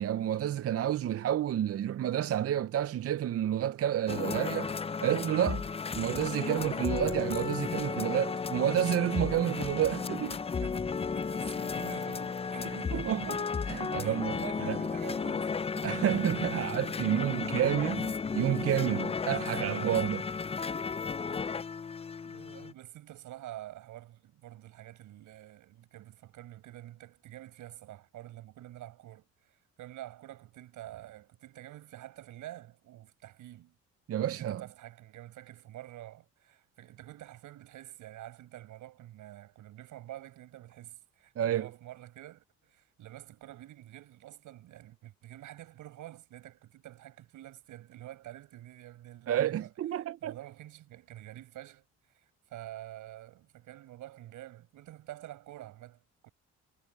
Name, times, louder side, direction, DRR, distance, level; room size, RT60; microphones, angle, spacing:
voice 1, 0.0-4.7 5.0-5.7 5.9-10.3 12.6-14.3 14.6-14.8 15.8-20.3 34.1-34.6 41.4-41.7 49.3-50.3, right 11 dB, 50° right, 0.6 m, -30 dB
sound 1, 4.1-22.7, left 5 dB, 20° left, 0.4 m, -34 dB
voice 2, 10.1-13.1 14.0-15.9 16.6-16.8 22.2-33.8 34.4-49.7 50.2-56.3, right 14 dB, 85° right, 6.0 m, -48 dB
cardioid pair, 90°, 30 cm